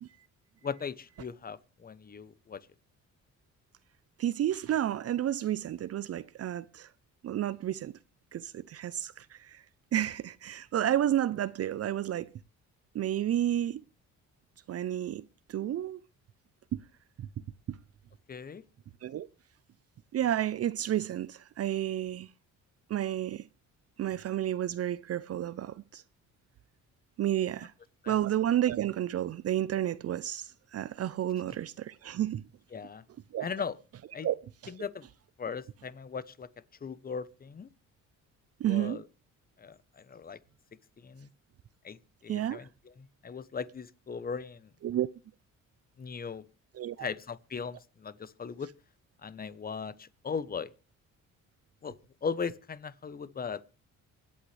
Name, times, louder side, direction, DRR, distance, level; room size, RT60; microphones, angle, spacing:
voice 1, 0.6-2.6 18.3-18.6 28.0-28.2 32.7-33.0 33.4-33.8 34.1-34.3 34.7-35.1 35.4-36.5 36.8-37.7 38.6-39.0 39.6-40.4 41.0-41.3 41.8-44.7 46.0-46.4 47.0-48.7 49.2-50.7 51.8-51.9 52.2-53.6, left 6 dB, 30° left, 0.9 m, -38 dB
voice 2, 4.2-6.9 7.2-7.9 8.3-9.6 9.9-12.3 12.9-13.8 14.7-15.2 15.5-16.0 16.7-16.8 17.2-17.3 17.7-17.8 19.0-19.3 20.1-22.3 22.9-23.5 24.0-26.0 27.2-27.7 28.1-32.4 33.3-33.5 34.2-34.4 34.6-34.7 38.6-39.0 42.3-42.7 44.8-45.1 46.7-47.1, right 11 dB, 55° right, 0.6 m, -31 dB
25.5 x 8.7 x 3.3 m
cardioid pair, 90°, 30 cm